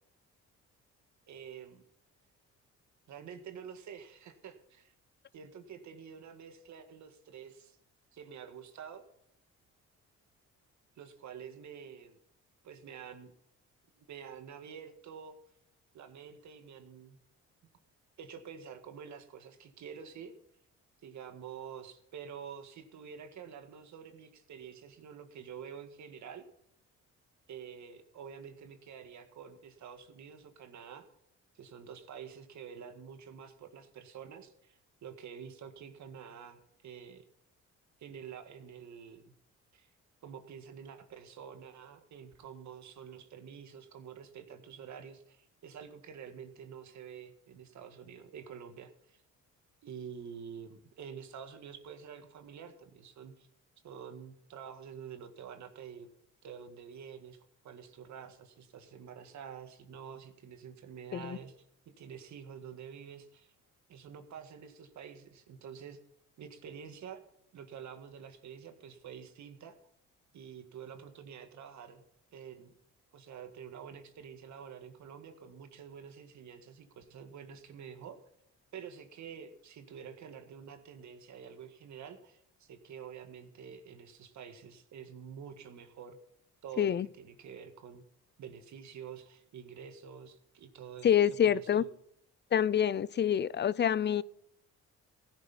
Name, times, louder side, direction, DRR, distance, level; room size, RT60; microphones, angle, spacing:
voice 1, 1.3-1.8 3.1-4.9 5.3-7.8 8.1-9.0 11.0-12.2 12.6-13.3 14.0-15.4 15.9-17.2 18.2-20.3 21.0-26.4 27.5-31.1 31.5-37.2 38.0-39.3 39.7-39.9 40.2-49.2 49.8-53.5 53.8-56.1 56.4-61.6 61.9-63.5 63.9-66.0 66.4-67.2 67.5-69.8 70.3-72.0 72.3-72.7 73.1-78.2 78.7-86.2 86.6-88.0 88.4-91.9, right 7 dB, 70° right, 1.8 m, -48 dB
voice 2, 91.0-91.8 92.5-94.2, left 9 dB, 35° left, 0.4 m, -27 dB
16.0 x 10.5 x 4.2 m
cardioid pair, 90°, 30 cm